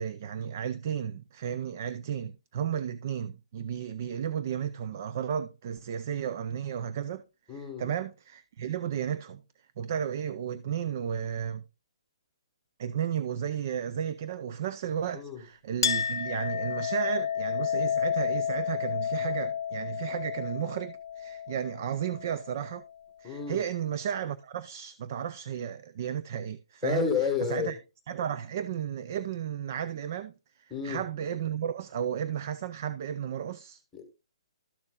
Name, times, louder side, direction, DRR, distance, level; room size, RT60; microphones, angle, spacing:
voice 1, 0.0-9.4 9.8-11.6 12.8-22.8 23.2-27.1 27.5-27.8 28.1-33.8, right 9 dB, 30° right, 0.4 m, -33 dB
voice 2, 7.5-7.9 15.1-15.4 23.2-23.6 26.8-27.8 30.7-31.0 33.9-34.0, left 6 dB, 5° left, 1.3 m, -30 dB
Chink clink, 15.8-22.9, left 8 dB, 50° left, 0.5 m, -31 dB
12.5 x 6.9 x 2.3 m
hypercardioid pair, 175°, 3 cm